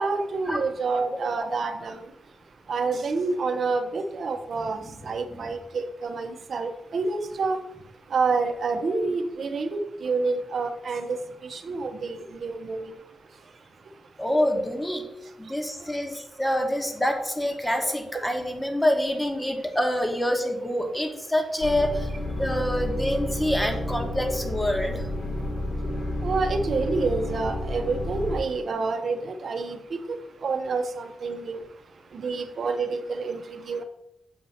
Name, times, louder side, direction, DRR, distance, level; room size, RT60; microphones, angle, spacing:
voice 1, 0.0-2.1 2.7-7.6 8.1-12.9 15.8-15.9 17.8-18.2 26.2-31.6 32.1-33.8, right 4 dB, 60° right, 7 dB, 0.7 m, -28 dB
voice 2, 14.2-15.0 15.4-22.1 22.4-25.1, equal, 10° left, 4 dB, 1.2 m, -26 dB
sound 1, 21.6-28.4, left 1 dB, 65° left, 1.8 m, -30 dB
7.4 x 2.8 x 5.6 m, 0.83 s
cardioid pair, 85°, 0 cm